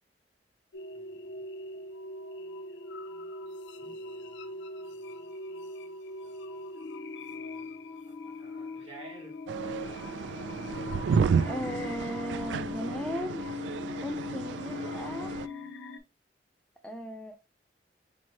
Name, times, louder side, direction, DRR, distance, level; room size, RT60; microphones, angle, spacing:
sound 1, 0.7-16.0, left 4 dB, 90° left, 0.5 m, -40 dB
voice 1, 0.9-1.4 3.8-4.5 4.9-5.3 5.6-5.7 6.2-6.7 7.2-10.2, right 2 dB, 30° right, 1.5 m, -54 dB
sound 2, 9.5-15.5, right 6 dB, 85° right, 0.3 m, -32 dB
voice 2, 11.5-13.5 14.0-15.3 16.8-17.4, equal, 5° left, 0.4 m, -37 dB
4.5 x 2.9 x 2.9 m
head